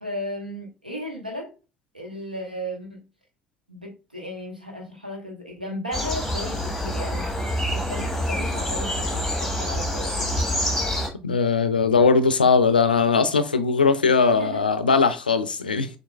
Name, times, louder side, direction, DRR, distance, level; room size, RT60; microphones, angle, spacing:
voice 1, 0.0-1.5 1.9-3.0 3.7-7.4 7.7-10.3 14.3-14.6, equal, 90° right, 1.0 m, -35 dB
sound 1, 5.9-11.1, left 1 dB, ahead, 1.3 m, -26 dB
voice 2, 11.2-15.9, left 5 dB, 85° left, 0.4 m, -20 dB
6.5 x 2.8 x 2.2 m
figure-of-eight pair, 55°, 5 cm